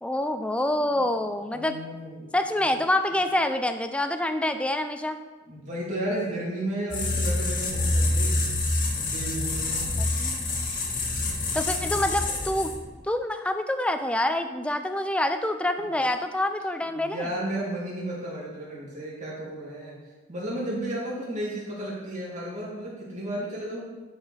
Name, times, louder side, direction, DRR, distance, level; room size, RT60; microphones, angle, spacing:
voice 1, 0.0-1.8 2.3-5.2 10.0-10.5 11.5-12.7 13.1-17.3, left 1 dB, 5° left, 8 dB, 0.4 m, -26 dB
voice 2, 1.5-2.3 5.5-8.4 9.0-9.8 16.9-20.0 20.3-23.8, right 1 dB, 40° right, -6 dB, 2.9 m, -33 dB
sound 1, 6.9-12.9, left 2 dB, 45° left, 1.5 m, -27 dB
10.5 x 4.9 x 4.3 m, 1.2 s
head